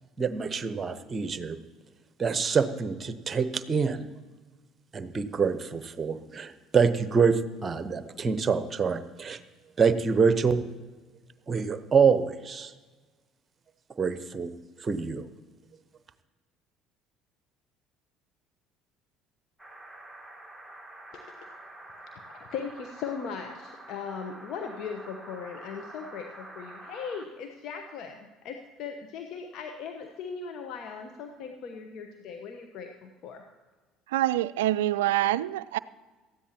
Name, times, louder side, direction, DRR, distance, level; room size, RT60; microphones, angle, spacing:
voice 1, 0.2-1.6 2.2-4.1 4.9-9.4 9.8-10.6 11.5-12.7 14.0-14.5 14.8-15.3, right 5 dB, 30° right, 12 dB, 0.9 m, -26 dB
sound 1, 19.6-27.3, right 1 dB, ahead, 1.9 m, -47 dB
voice 2, 21.1-21.5 22.3-33.4, left 6 dB, 55° left, 4 dB, 1.0 m, -39 dB
voice 3, 34.1-35.8, right 14 dB, 70° right, 18 dB, 0.3 m, -26 dB
18.5 x 14.0 x 2.9 m, 1.3 s
figure-of-eight pair, 60°, 0 cm